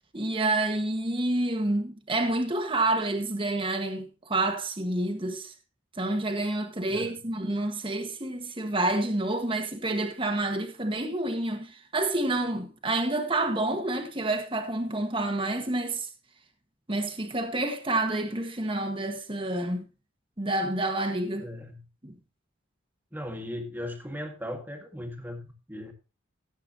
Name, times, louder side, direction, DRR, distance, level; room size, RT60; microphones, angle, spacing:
voice 1, 0.1-5.5 6.0-16.1 16.9-19.9 20.4-21.5 22.0-22.1, right 2 dB, 25° right, 1.5 m, -28 dB
voice 2, 21.4-21.8 23.1-25.4 25.7-25.9, left 1 dB, 10° right, 1.9 m, -37 dB
16.5 x 8.3 x 2.9 m
head